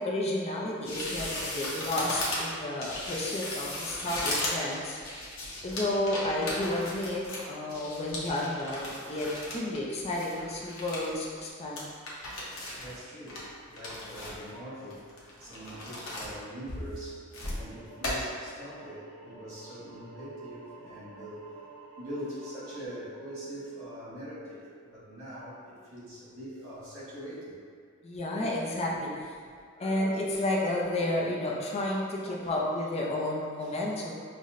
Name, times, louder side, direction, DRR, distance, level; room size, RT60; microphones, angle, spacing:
voice 1, 0.0-5.0 5.6-11.9 28.0-29.1 29.8-34.1, left 1 dB, 30° left, -3 dB, 0.4 m, -31 dB
sound 1, 0.8-9.8 10.1-11.1 11.4-11.5 11.8-12.9 13.3-14.5 14.9-16.3 16.7-17.6 18.0-18.1, left 1 dB, 70° left, 0.8 m, -37 dB
voice 2, 3.8-4.2 12.7-21.5 22.0-27.6 32.4-32.5 33.6-33.7, equal, 80° right, -8 dB, 1.4 m, -43 dB
sound 2, 17.7-22.9, right 3 dB, 35° right, 1.0 m, -51 dB
5.5 x 2.1 x 2.5 m, 2.2 s
head